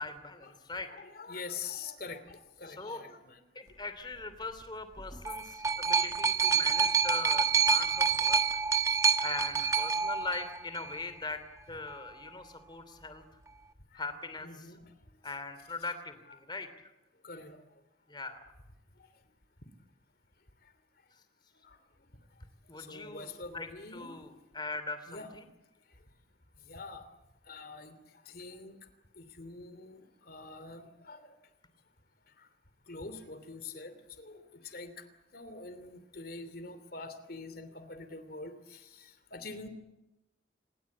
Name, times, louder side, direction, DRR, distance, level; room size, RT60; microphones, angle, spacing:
voice 1, 0.0-0.9 2.8-3.0 3.5-8.4 9.2-13.2 13.9-14.7 15.2-16.9 18.1-18.4 22.7-25.4, left 3 dB, 25° left, 11 dB, 2.9 m, -41 dB
voice 2, 0.9-3.4 9.6-9.9 14.4-14.8 15.9-16.0 17.2-17.6 22.9-24.1 25.1-25.3 26.7-27.0 27.5-27.9 28.3-28.7 29.2-30.0 30.3-31.2 32.9-34.9 35.3-39.7, left 4 dB, 50° left, 11 dB, 2.9 m, -45 dB
sound 1, 5.0-11.0 11.9-12.0, right 6 dB, 15° right, 1.2 m, -27 dB
26.0 x 21.5 x 8.5 m, 1.0 s
head